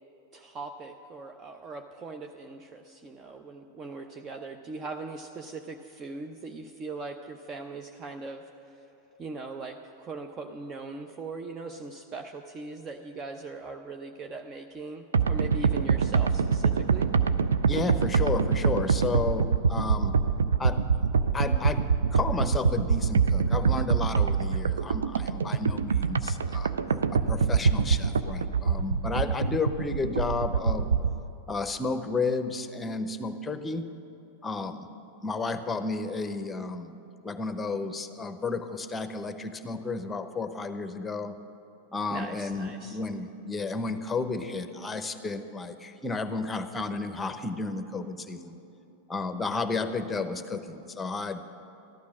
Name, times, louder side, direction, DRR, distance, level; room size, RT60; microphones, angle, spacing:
voice 1, 0.3-8.9 9.2-17.1 42.1-43.0, right 3 dB, 30° right, 5 dB, 0.7 m, -40 dB
sound 1, 15.1-31.2, right 5 dB, 75° right, 0.5 m, -25 dB
voice 2, 17.7-20.2 20.6-20.8 21.3-21.8 22.1-30.9 31.5-33.9 34.4-34.9 35.2-36.9 37.2-41.4 41.9-48.6 49.1-51.6, left 3 dB, 15° left, 9 dB, 0.9 m, -32 dB
14.0 x 11.5 x 6.1 m, 2.9 s
figure-of-eight pair, 95°, 0 cm